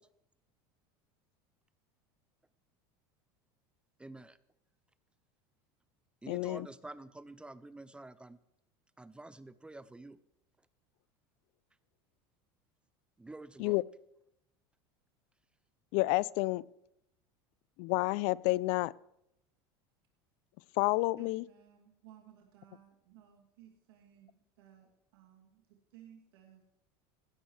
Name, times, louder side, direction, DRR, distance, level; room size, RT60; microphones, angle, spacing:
voice 1, 4.0-4.4 6.2-8.4 9.0-10.2 13.2-13.8, right 2 dB, 10° right, 16 dB, 0.5 m, -48 dB
voice 2, 6.3-6.7 13.6-13.8 15.9-16.6 17.8-18.9 20.8-21.4, left 21 dB, 60° left, 23 dB, 0.4 m, -29 dB
voice 3, 21.2-26.6, right 11 dB, 90° right, 0 dB, 2.7 m, -59 dB
17.0 x 13.0 x 3.3 m, 0.82 s
supercardioid pair, 120°, 13 cm